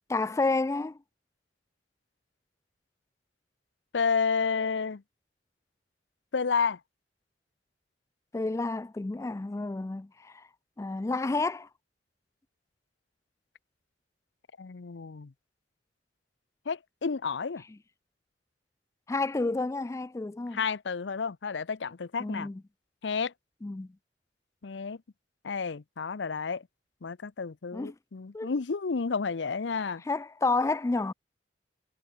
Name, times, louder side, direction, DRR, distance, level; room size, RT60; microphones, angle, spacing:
voice 1, 0.1-1.0 8.3-10.5 10.8-11.7 19.1-20.6 22.2-22.6 23.6-23.9 27.7-27.9 28.3-28.5 30.1-31.1, left 3 dB, 15° left, 0.3 m, -30 dB
voice 2, 3.9-5.0 6.3-6.8 14.6-15.3 16.7-17.6 20.5-22.5 23.0-23.3 24.6-25.0 25.4-26.6 27.0-30.0, left 5 dB, 90° left, 0.6 m, -31 dB
head